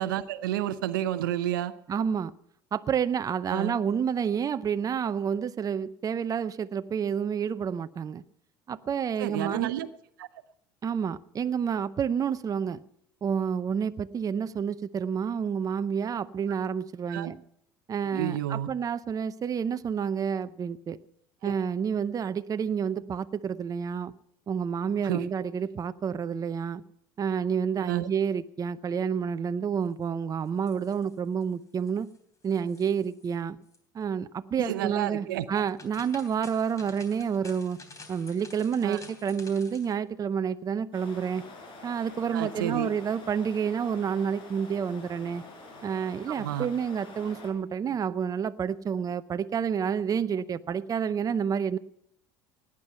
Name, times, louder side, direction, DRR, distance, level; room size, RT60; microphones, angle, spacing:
voice 1, 0.0-1.7 3.5-3.8 9.2-9.9 10.2-10.3 17.1-17.3 18.1-18.7 21.4-21.5 25.0-25.3 27.8-28.1 34.6-35.7 38.8-39.0 42.3-42.9 46.3-46.7, right 12 dB, 85° right, 14 dB, 0.7 m, -30 dB
voice 2, 1.9-2.3 2.7-8.2 8.7-9.7 10.8-12.8 13.2-17.4 17.9-21.0 21.4-24.1 24.5-26.8 27.2-32.1 32.4-33.6 33.9-37.8 38.1-41.4 41.8-45.4 45.8-51.8, right 7 dB, 35° right, 13 dB, 0.7 m, -29 dB
sound 1, 30.5-31.4 31.7-32.2 32.4-33.3 33.6-33.8 35.4-39.9, left 3 dB, 30° left, 3.5 m, -50 dB
sound 2, 40.9-47.5, left 2 dB, 50° left, 5.1 m, -47 dB
17.5 x 9.8 x 5.6 m, 0.70 s
hypercardioid pair, 75°, 11 cm